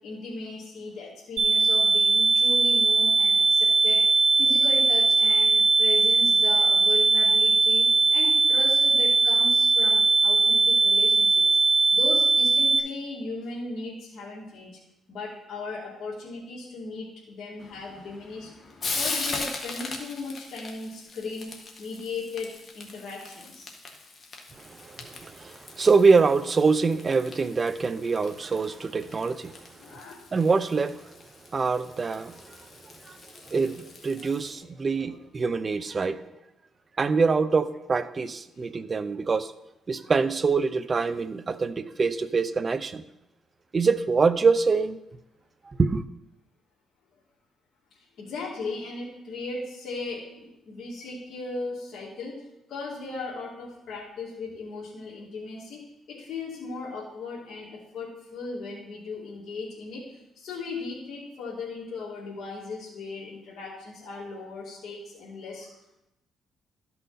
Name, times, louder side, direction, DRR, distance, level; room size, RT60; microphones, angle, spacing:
voice 1, 0.0-4.0 4.4-11.4 11.9-14.7 15.1-18.5 18.9-21.5 21.8-23.7 29.8-30.3 34.6-35.2 48.0-55.8 56.1-65.7, left 3 dB, 60° left, -5 dB, 2.5 m, -37 dB
sound 1, 1.4-12.8, right 3 dB, 75° right, 1.5 m, -20 dB
Frying (food), 17.6-34.5, left 3 dB, 45° left, 1.6 m, -40 dB
voice 2, 24.6-30.0 30.3-31.1 31.5-32.6 32.8-33.2 33.5-36.2 37.0-39.5 39.9-43.0 43.7-45.0 45.7-46.0, right 4 dB, 35° right, 13 dB, 0.6 m, -25 dB
12.5 x 5.6 x 4.2 m, 0.87 s
cardioid pair, 90°, 0 cm